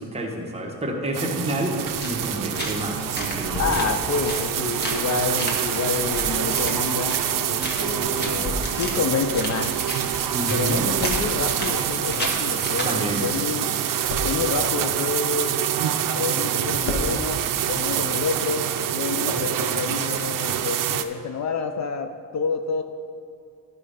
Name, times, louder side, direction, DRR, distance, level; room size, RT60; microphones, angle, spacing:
voice 1, 0.0-3.9 10.3-10.9 12.8-13.3, right 1 dB, 20° right, -1 dB, 1.1 m, -29 dB
sound 1, 1.1-21.0, right 10 dB, 70° right, 0.5 m, -26 dB
sound 2, 1.8-13.4, left 1 dB, 30° left, 1.3 m, -35 dB
sound 3, 3.4-3.8 4.5-7.8 8.2-9.0 9.2-11.7 12.0-13.2 13.5-14.5 15.1-16.1 16.4-16.5 16.7-17.1, left 1 dB, 85° left, 1.5 m, -35 dB
voice 2, 3.6-7.2 7.5-9.8 10.5-13.7 14.2-15.6 16.0-18.7 18.9-22.8, left 5 dB, 55° left, 7 dB, 0.5 m, -28 dB
11.5 x 5.2 x 5.0 m, 2.5 s
wide cardioid pair, 170°, 34 cm